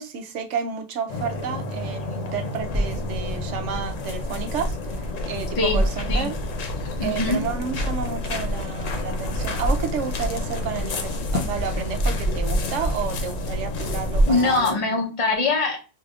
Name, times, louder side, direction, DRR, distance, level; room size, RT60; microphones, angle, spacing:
voice 1, 0.0-6.4 7.0-14.8, right 6 dB, 75° right, 1.0 m, -31 dB
sound 1, 1.1-14.7, left 3 dB, 85° left, 1.1 m, -32 dB
sound 2, 2.6-14.3, right 1 dB, 30° right, 1.0 m, -28 dB
voice 2, 7.0-7.4 14.2-15.8, left 3 dB, 30° left, 0.8 m, -22 dB
4.8 x 2.8 x 2.3 m
omnidirectional pair, 1.3 m